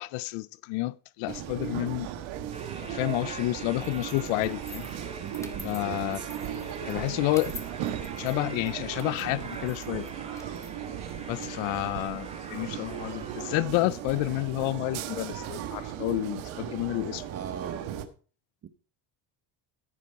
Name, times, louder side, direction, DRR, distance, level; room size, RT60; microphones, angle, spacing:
voice 1, 0.0-2.1 2.8-4.9 5.6-6.2 6.9-7.5 8.2-10.1 11.3-17.3, left 20 dB, 75° left, 0.5 m, -30 dB
sound 1, 1.3-18.1, right 10 dB, 75° right, 1.6 m, -37 dB
sound 2, 2.5-13.6, right 3 dB, 15° right, 2.3 m, -45 dB
sound 3, 3.8-12.7, left 2 dB, 5° left, 1.5 m, -49 dB
voice 2, 5.2-6.3 17.3-17.9 18.6-18.7, right 8 dB, 30° right, 0.8 m, -39 dB
14.5 x 5.3 x 5.6 m
cardioid pair, 125°, 47 cm